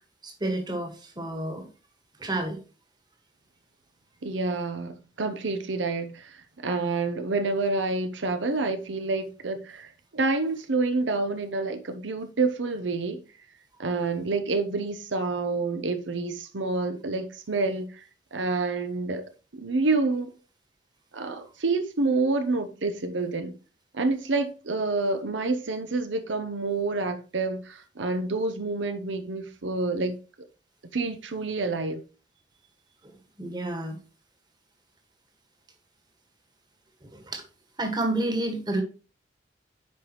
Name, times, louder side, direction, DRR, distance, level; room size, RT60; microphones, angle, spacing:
voice 1, 0.2-1.7 2.2-2.6 33.0-33.1 33.4-34.0 37.0-37.4 37.8-38.8, right 1 dB, 25° right, 1.6 m, -30 dB
voice 2, 4.2-13.2 13.8-18.0 18.3-19.2 19.5-20.3 21.1-23.6 23.9-30.2 30.9-32.0, right 3 dB, 90° right, 0.8 m, -28 dB
9.5 x 5.0 x 3.0 m
head